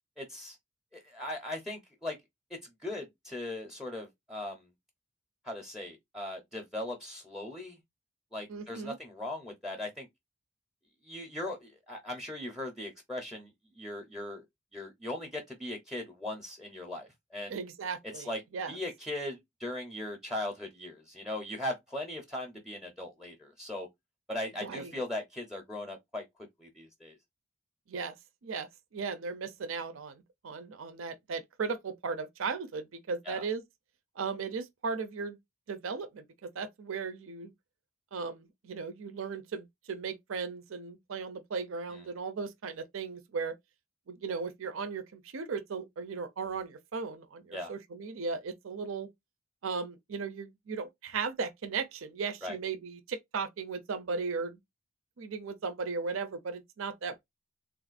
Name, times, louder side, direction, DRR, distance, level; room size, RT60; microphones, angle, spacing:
voice 1, 0.2-0.6 0.9-2.2 2.5-4.7 5.4-7.8 8.3-10.1 11.0-14.4 14.7-17.6 18.1-18.4 18.7-23.9 24.3-26.3 26.6-27.2 33.2-33.5 41.9-42.0 47.5-47.7 52.4-52.6, left 1 dB, ahead, 0.6 m, -39 dB
voice 2, 8.5-9.0 17.5-18.3 18.5-18.7 24.6-24.9 27.9-28.1 28.4-28.7 28.9-33.6 34.2-35.4 35.7-37.5 38.1-43.5 44.1-49.1 49.6-54.6 55.2-57.2, right 5 dB, 70° right, 0.5 m, -36 dB
3.5 x 2.4 x 2.4 m
head